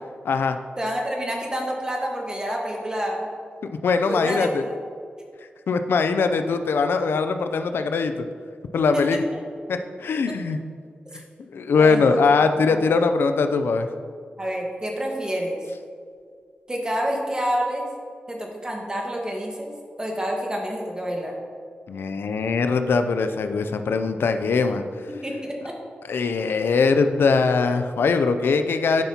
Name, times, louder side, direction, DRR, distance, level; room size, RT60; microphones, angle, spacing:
voice 1, 0.2-0.6 3.8-4.6 5.7-8.3 8.7-9.2 9.7-10.6 11.5-13.9 21.9-24.8 26.1-29.0, left 4 dB, 90° left, 8 dB, 0.4 m, -21 dB
voice 2, 0.8-3.3 4.1-4.8 8.9-9.2 10.3-10.4 11.1-11.2 11.7-12.2 12.9-13.0 14.4-15.6 16.7-17.8 18.3-19.7 20.0-21.3 25.1-25.7, equal, 20° right, 0 dB, 1.3 m, -28 dB
10.5 x 5.7 x 2.8 m, 2.2 s
wide cardioid pair, 80°, 4 cm